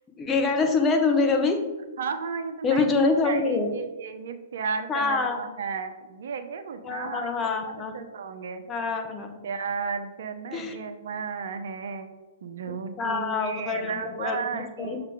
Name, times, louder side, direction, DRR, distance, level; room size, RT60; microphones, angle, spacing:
voice 1, 0.2-1.6 2.6-3.7 4.9-5.4 6.8-7.9 8.7-9.4 10.5-10.8 13.0-15.1, left 4 dB, 20° left, 4 dB, 1.0 m, -25 dB
voice 2, 2.0-2.9 3.2-7.3 7.7-8.6 9.4-12.1 12.4-15.1, right 5 dB, 65° right, 8 dB, 0.7 m, -34 dB
6.5 x 3.5 x 4.9 m, 1.2 s
hypercardioid pair, 120°, 0 cm